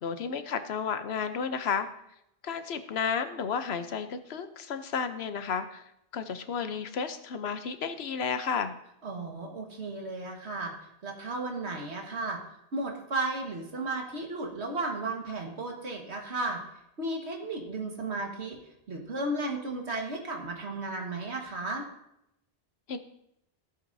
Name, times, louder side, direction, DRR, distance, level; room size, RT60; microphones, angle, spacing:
voice 1, 0.0-1.9 2.4-5.8 6.1-8.7 22.9-23.0, left 6 dB, 75° left, 10 dB, 1.0 m, -32 dB
voice 2, 9.0-10.7 11.0-12.4 12.7-16.6 17.0-18.6 18.9-21.9, right 2 dB, 90° right, 1 dB, 1.9 m, -34 dB
15.0 x 8.0 x 2.7 m, 0.78 s
omnidirectional pair, 1.1 m